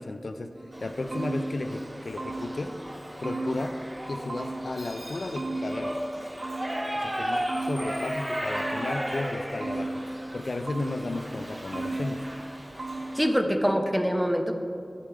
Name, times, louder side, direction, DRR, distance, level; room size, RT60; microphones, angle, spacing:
voice 1, 0.0-2.8 3.2-3.8 4.1-6.0 6.9-10.0 10.3-12.3, left 2 dB, 80° left, 7 dB, 0.5 m, -34 dB
sound 1, 0.6-2.8 3.2-4.9 5.4-7.0 7.5-9.1 9.6-11.2 11.7-12.5 12.8-13.4, right 2 dB, 70° right, 1.2 m, -35 dB
Shout / Livestock farm animals working animals, 0.7-13.3, equal, 35° right, 2.7 m, -36 dB
voice 2, 13.1-14.5, equal, 5° right, 5 dB, 1.0 m, -24 dB
10.0 x 8.2 x 4.9 m, 2.4 s
wide cardioid pair, 40°, 0 cm